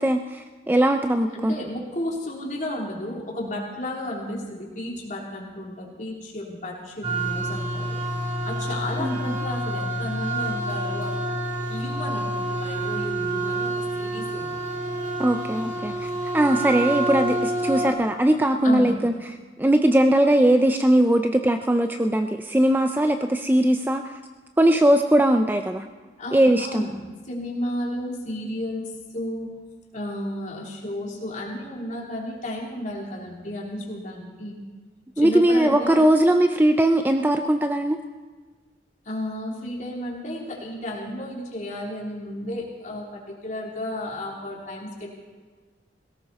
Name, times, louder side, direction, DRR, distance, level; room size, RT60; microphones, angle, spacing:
voice 1, 0.0-1.5 9.0-9.3 15.2-15.9 16.3-19.1 19.6-24.0 24.6-25.9 26.3-26.8 35.2-38.0, right 1 dB, 10° right, 6 dB, 0.5 m, -20 dB
voice 2, 1.3-11.4 11.7-14.5 18.6-19.0 26.2-29.5 29.9-34.6 35.2-36.1 39.0-45.1, left 1 dB, 45° left, -3 dB, 3.4 m, -33 dB
sound 1, 7.0-17.9, right 1 dB, 30° right, 3.0 m, -28 dB
18.5 x 17.5 x 4.2 m, 1.4 s
head